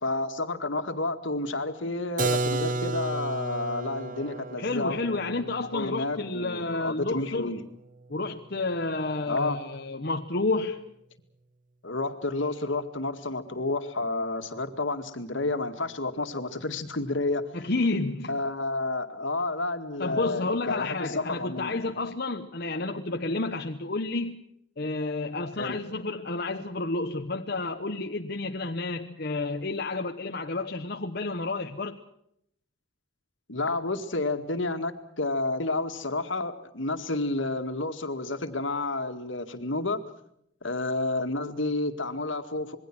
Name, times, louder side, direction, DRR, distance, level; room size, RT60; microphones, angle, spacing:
voice 1, 0.0-5.0 5.7-7.6 9.3-9.6 11.8-17.5 18.3-21.9 25.6-25.8 33.5-40.0 40.6-42.8, left 2 dB, 70° left, 8 dB, 2.2 m, -30 dB
Keyboard (musical), 2.2-7.8, right 3 dB, 40° right, 0.9 m, -33 dB
voice 2, 4.6-7.5 8.1-10.9 17.5-18.4 20.0-24.4 24.8-32.0, left 3 dB, 50° left, 4 dB, 1.1 m, -30 dB
26.5 x 22.0 x 6.2 m, 0.74 s
head